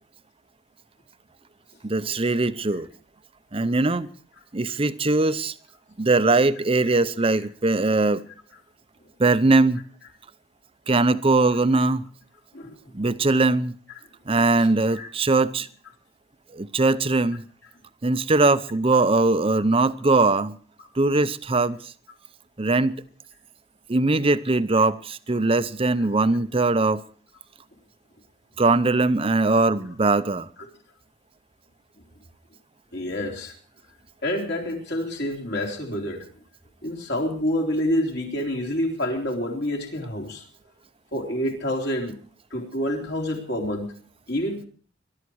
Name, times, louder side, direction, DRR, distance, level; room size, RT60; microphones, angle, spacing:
voice 1, 1.8-2.9 3.5-4.1 4.5-5.5 6.0-8.2 9.2-9.8 10.9-12.0 12.9-13.7 14.3-15.7 16.5-17.4 18.0-20.6 21.0-21.8 22.6-22.9 23.9-27.0 28.6-30.5, right 3 dB, 30° right, 0.7 m, -21 dB
voice 2, 12.5-12.9 14.9-15.1 32.9-33.5 34.2-36.3 36.8-40.4 41.1-42.2 42.5-43.9 44.3-44.7, left 1 dB, 60° left, 3.8 m, -27 dB
21.5 x 12.5 x 4.7 m
head